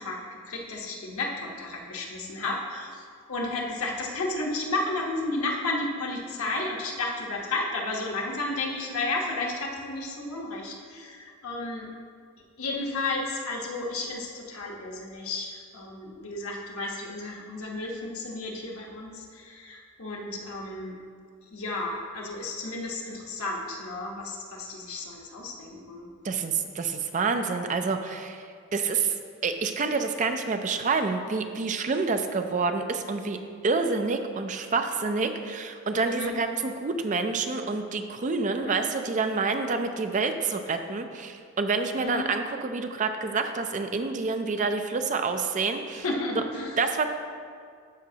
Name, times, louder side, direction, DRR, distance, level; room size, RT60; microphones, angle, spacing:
voice 1, 0.0-3.0 3.3-11.9 12.6-20.9 21.5-26.1 36.1-36.3 38.5-38.8 42.0-42.2 45.9-46.8, left 2 dB, 90° left, -1 dB, 1.1 m, -32 dB
voice 2, 26.2-28.4 28.7-29.1 29.4-33.4 33.6-46.0 46.8-47.1, right 4 dB, 35° right, 7 dB, 0.4 m, -28 dB
13.0 x 5.0 x 2.8 m, 2.1 s
head